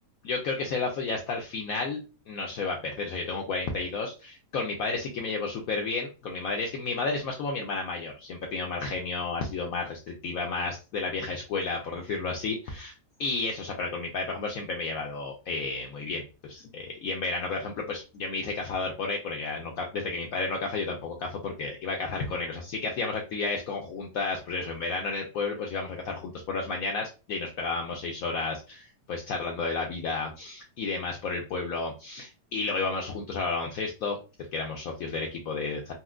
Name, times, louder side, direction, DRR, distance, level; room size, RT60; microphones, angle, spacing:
voice 1, 0.2-2.0 2.3-12.9 13.2-34.2 34.5-35.9, left 3 dB, 70° left, 1 dB, 0.9 m, -32 dB
4.2 x 2.1 x 2.3 m, 0.31 s
omnidirectional pair, 1.8 m